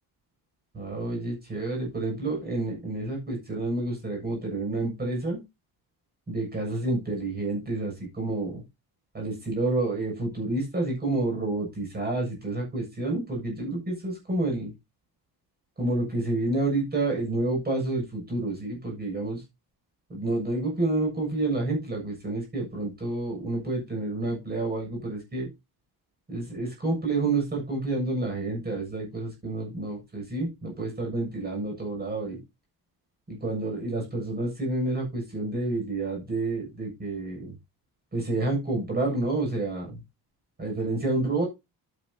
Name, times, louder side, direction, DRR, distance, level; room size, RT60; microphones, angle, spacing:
voice 1, 0.7-5.4 6.3-8.6 9.1-14.7 15.8-19.4 20.1-25.5 26.3-32.4 33.3-37.5 38.1-40.0 40.6-41.5, right 2 dB, 25° right, 1 dB, 7.3 m, -29 dB
11.0 x 10.5 x 2.9 m, 0.24 s
cardioid pair, 155°, 38 cm